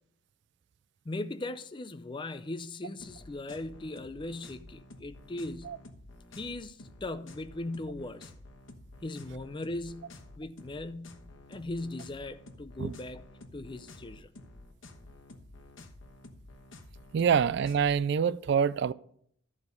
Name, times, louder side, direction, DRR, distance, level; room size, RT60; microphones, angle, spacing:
voice 1, 1.0-5.8 6.4-8.3 9.0-11.2 11.5-13.2 13.5-14.3, left 2 dB, 25° left, 0.5 m, -39 dB
sound 1, 3.0-18.0, left 2 dB, 70° left, 1.2 m, -51 dB
voice 2, 17.1-18.9, right 7 dB, 60° right, 0.3 m, -26 dB
13.5 x 4.9 x 5.3 m
head